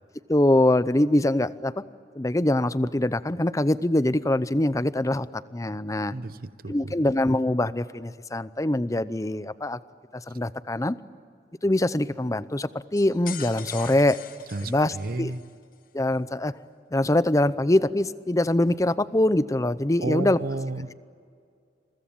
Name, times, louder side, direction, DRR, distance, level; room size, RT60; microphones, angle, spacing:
voice 1, 0.3-1.8 2.2-5.3 5.5-6.1 6.7-9.8 10.1-11.0 11.6-14.2 14.6-15.3 15.9-16.5 16.9-20.4, left 1 dB, 20° left, 15 dB, 0.6 m, -23 dB
voice 2, 6.0-6.9 14.5-15.4 20.0-20.9, right 2 dB, 55° right, 15 dB, 0.8 m, -32 dB
sound 1, 13.0-15.5, left 9 dB, 50° left, 1.2 m, -41 dB
28.5 x 22.5 x 8.7 m, 2.3 s
head